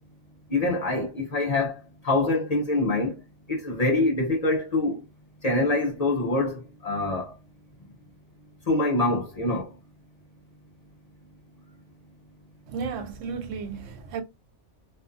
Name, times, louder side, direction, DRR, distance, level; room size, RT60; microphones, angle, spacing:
voice 1, 0.5-1.8 2.0-3.2 3.5-5.0 5.4-7.3 8.7-9.7, left 2 dB, 40° left, 0.6 m, -25 dB
voice 2, 12.7-14.2, right 5 dB, 90° right, 1.0 m, -33 dB
2.6 x 2.4 x 2.4 m
omnidirectional pair, 1.3 m